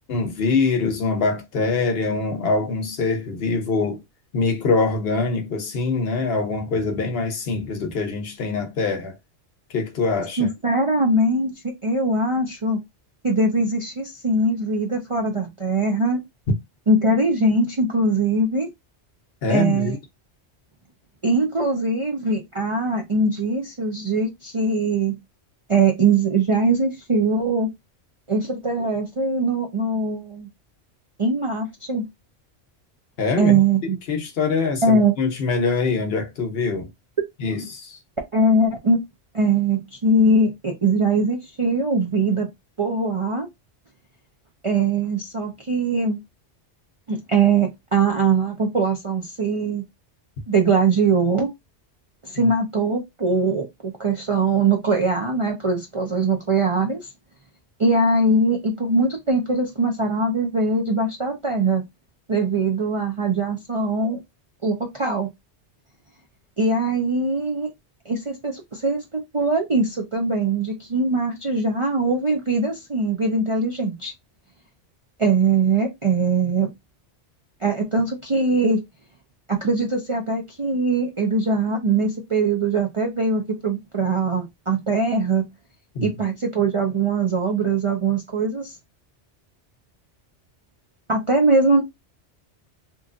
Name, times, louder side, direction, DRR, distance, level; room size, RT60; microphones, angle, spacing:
voice 1, 0.1-4.0 4.3-9.1 9.7-10.5 19.4-20.0 33.2-33.6 34.1-36.9 37.4-38.0 85.9-86.1, left 4 dB, 60° left, 0.9 m, -24 dB
voice 2, 10.4-11.5 11.8-12.8 13.2-16.2 16.9-18.7 19.5-19.9 21.2-25.2 25.7-27.7 28.3-30.5 31.2-32.0 33.4-34.0 34.8-35.1 38.3-39.0 39.3-42.5 42.8-43.5 44.6-46.2 47.1-49.8 50.5-51.5 52.2-57.1 57.8-61.8 62.3-64.2 64.6-65.3 66.6-67.7 68.1-74.1 75.2-76.7 77.6-78.8 79.5-85.4 86.0-88.8 91.1-91.8, right 3 dB, 40° right, 0.4 m, -21 dB
3.0 x 2.3 x 2.4 m
omnidirectional pair, 1.2 m